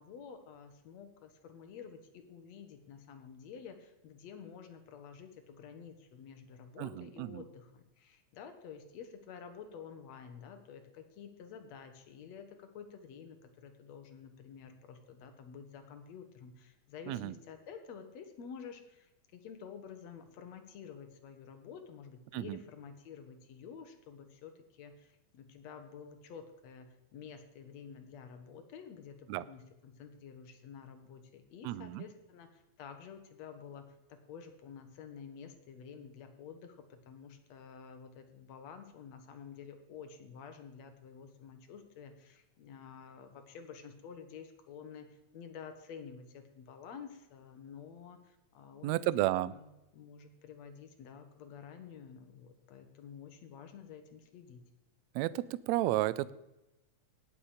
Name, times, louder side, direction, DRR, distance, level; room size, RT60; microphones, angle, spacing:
voice 1, 0.0-33.8 34.1-49.0 49.5-54.6, left 7 dB, 70° left, 7 dB, 2.3 m, -50 dB
voice 2, 6.8-7.4 17.1-17.3 22.3-22.6 29.3-29.4 31.6-32.0 48.8-49.5 55.2-56.3, right 16 dB, 80° right, 18 dB, 1.7 m, -32 dB
18.0 x 7.2 x 5.0 m, 0.92 s
omnidirectional pair, 3.3 m